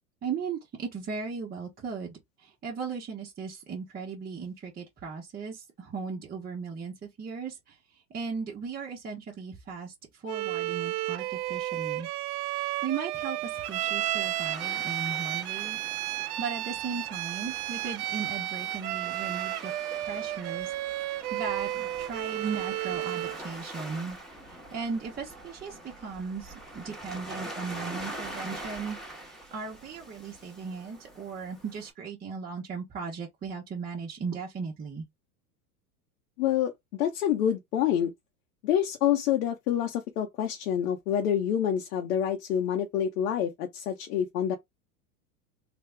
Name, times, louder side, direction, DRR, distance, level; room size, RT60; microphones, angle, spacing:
voice 1, 0.2-7.8 8.1-12.1 12.6-15.8 16.1-19.7 20.0-24.2 24.5-29.0 29.5-35.0, right 5 dB, 20° right, 0.8 m, -37 dB
Bowed string instrument, 10.3-23.5, right 15 dB, 70° right, 0.5 m, -32 dB
Waves surf, 13.1-31.9, right 1 dB, ahead, 1.0 m, -44 dB
voice 2, 36.4-38.1 38.6-44.6, left 10 dB, 75° left, 0.9 m, -27 dB
3.4 x 2.3 x 3.3 m
hypercardioid pair, 110°, 46 cm